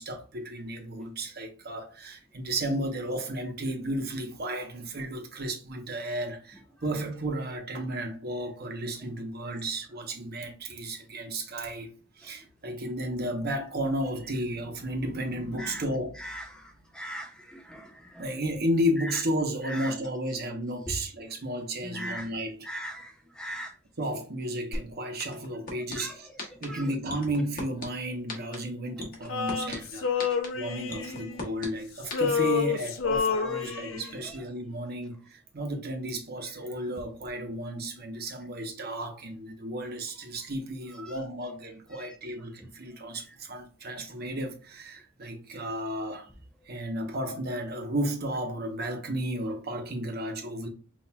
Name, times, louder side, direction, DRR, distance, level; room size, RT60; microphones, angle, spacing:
voice 1, 0.0-16.3 18.2-22.6 24.0-46.3 46.7-50.7, right 1 dB, 50° right, 0.9 m, -33 dB
voice 2, 17.0-17.3 17.7-17.8 21.9-22.3 22.7-23.1 23.4-23.7 26.0-26.1 33.7-33.8, equal, 5° left, 0.5 m, -37 dB
sound 1, 24.7-24.8 25.2-25.9 26.4-26.6 27.1-27.8 28.3-28.6 29.0-29.7 30.2-30.5 30.9-31.7 32.1-32.2, left 3 dB, 45° left, 1.4 m, -35 dB
Male singing, 29.3-31.7 32.0-34.2, left 6 dB, 70° left, 0.5 m, -29 dB
5.6 x 2.6 x 2.3 m
head